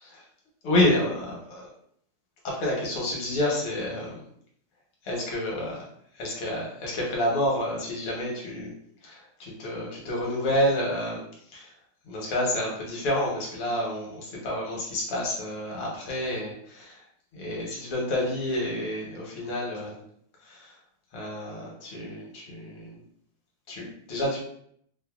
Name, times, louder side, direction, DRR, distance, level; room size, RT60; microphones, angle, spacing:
voice 1, 0.6-1.7 2.4-4.2 5.0-5.8 6.1-8.7 9.0-11.2 11.5-11.7 12.1-17.0 17.3-20.0 20.4-20.8 21.1-23.0 23.7-24.4, left 1 dB, 85° left, -3 dB, 1.9 m, -29 dB
5.0 x 2.1 x 2.3 m, 0.67 s
omnidirectional pair, 2.3 m